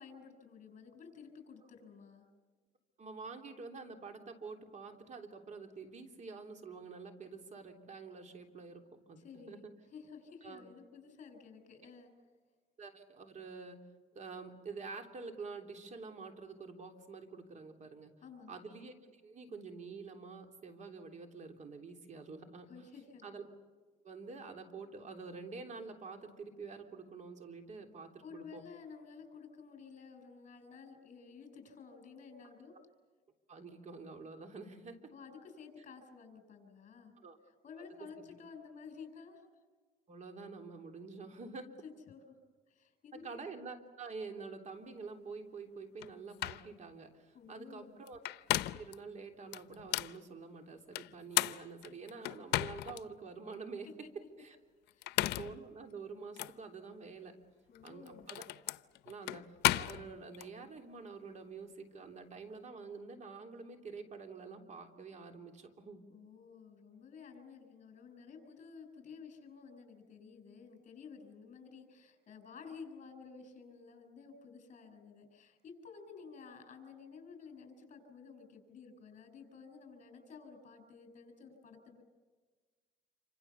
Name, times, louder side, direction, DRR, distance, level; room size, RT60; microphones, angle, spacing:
voice 1, 0.0-2.3 9.2-12.1 18.2-18.6 22.7-23.3 28.2-32.8 35.1-37.1 37.5-39.5 41.6-42.4 42.7-43.5 47.3-48.0 54.0-54.1 54.9-55.2 57.7-58.3 66.1-82.0, left 5 dB, 45° left, 7 dB, 6.8 m, -53 dB
voice 2, 3.0-9.2 9.5-9.6 10.4-10.6 12.8-13.8 14.1-18.1 18.5-22.7 23.2-23.5 24.0-28.6 33.5-35.0 37.2-37.4 40.1-41.7 43.2-48.2 48.7-53.9 54.1-54.6 55.2-57.3 57.8-58.4 59.0-59.4 59.7-66.0, right 4 dB, 45° right, 5 dB, 3.3 m, -47 dB
sound 1, 46.0-46.1 46.4-46.7 48.1-48.9 49.5-50.2 50.9-53.0 53.5-53.6 54.9-55.6 56.4-56.5 57.7-60.5, left 16 dB, 80° left, 0.7 m, -34 dB
28.0 x 26.0 x 7.1 m, 1.4 s
cardioid pair, 110°, 17 cm